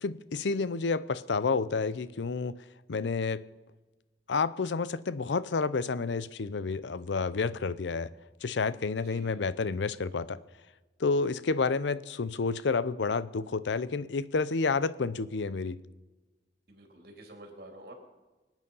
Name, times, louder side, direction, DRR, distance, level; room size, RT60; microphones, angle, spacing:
voice 1, 0.0-2.6 2.9-3.4 4.3-8.1 8.4-10.4 11.0-15.8, left 4 dB, 85° left, 0.6 m, -30 dB
voice 2, 8.9-9.5 10.0-10.1 16.7-17.9, right 1 dB, 60° right, 3.2 m, -50 dB
24.5 x 9.2 x 5.5 m
head